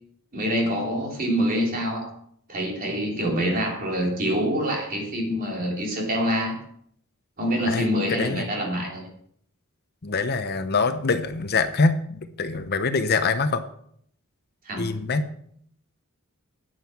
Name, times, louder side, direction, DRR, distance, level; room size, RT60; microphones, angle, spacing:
voice 1, 0.3-2.1 2.5-6.6 7.4-9.0 14.6-14.9, equal, 40° right, -1 dB, 3.4 m, -26 dB
voice 2, 7.7-8.4 10.0-13.6 14.8-15.3, left 4 dB, 45° left, 10 dB, 0.8 m, -24 dB
9.4 x 9.2 x 5.8 m, 0.67 s
head